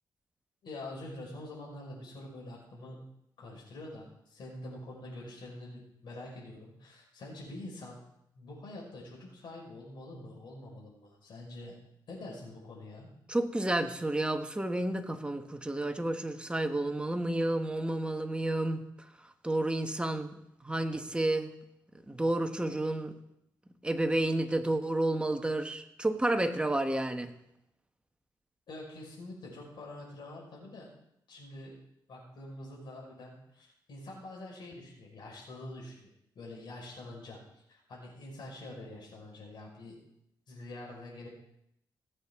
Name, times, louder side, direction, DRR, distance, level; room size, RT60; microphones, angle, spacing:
voice 1, 0.6-3.0 3.4-8.0 8.3-11.8 12.1-13.1 28.7-30.9 31.3-31.8 32.1-36.1 36.3-40.0 40.5-41.3, left 1 dB, 65° left, -2 dB, 4.9 m, -46 dB
voice 2, 13.3-18.8 19.4-20.4 20.6-21.5 22.1-23.1 23.8-27.3, right 1 dB, 10° right, 6 dB, 1.2 m, -30 dB
17.0 x 8.6 x 3.7 m, 0.77 s
cardioid pair, 75°, 8 cm